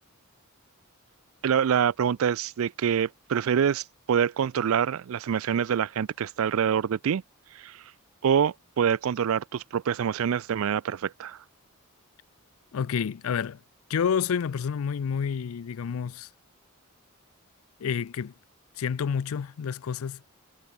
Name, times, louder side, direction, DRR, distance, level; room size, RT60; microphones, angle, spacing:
voice 1, 1.4-7.2 7.5-7.8 8.2-11.4, right 8 dB, 65° right, 0.4 m, -26 dB
voice 2, 12.7-13.6 13.9-16.3 17.8-18.3 18.8-20.2, left 7 dB, 70° left, 0.4 m, -29 dB
head